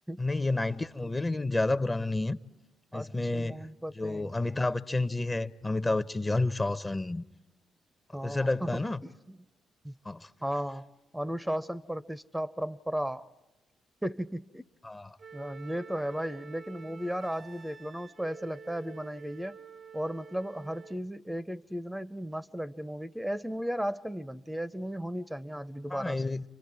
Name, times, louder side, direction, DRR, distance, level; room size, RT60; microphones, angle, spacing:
voice 1, 0.2-2.4 2.9-3.7 4.0-7.2 8.2-9.0 10.0-10.3 14.8-15.2 25.9-26.4, left 2 dB, 25° left, 0.8 m, -30 dB
voice 2, 2.9-4.3 8.1-9.1 9.8-9.9 10.4-10.9 11.1-13.3 14.0-14.6 15.3-19.6 19.9-26.2, equal, 5° right, 0.7 m, -35 dB
Wind instrument woodwind instrument, 15.2-21.0, right 5 dB, 40° right, 0.7 m, -49 dB
30.0 x 24.5 x 4.7 m
hypercardioid pair, 40°, 0 cm